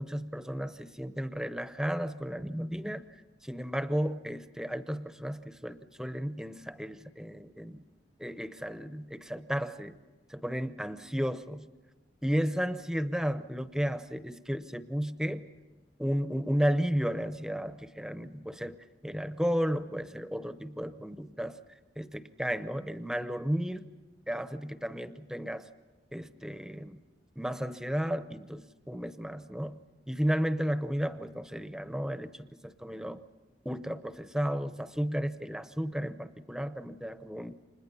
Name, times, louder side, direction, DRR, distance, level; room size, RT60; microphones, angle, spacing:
voice 1, 0.0-3.0 3.4-7.8 8.2-10.0 10.3-11.7 12.2-15.5 16.0-18.8 19.0-21.6 22.0-23.9 24.3-25.7 26.1-27.0 27.4-29.8 30.1-33.2 33.6-37.6, equal, 5° right, 11 dB, 0.7 m, -33 dB
30.0 x 26.5 x 5.6 m, 1.2 s
head